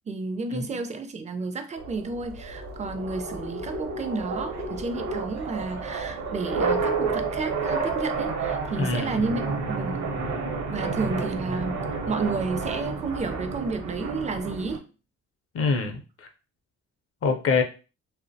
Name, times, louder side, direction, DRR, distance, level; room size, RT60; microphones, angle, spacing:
voice 1, 0.1-14.9, right 3 dB, 25° right, 0.4 m, -32 dB
sound 1, 1.8-14.8, right 4 dB, 60° right, 0.7 m, -30 dB
voice 2, 8.8-9.3 15.5-16.3 17.2-17.6, left 4 dB, 50° left, 0.6 m, -25 dB
2.4 x 2.1 x 2.6 m
cardioid pair, 90°, 30 cm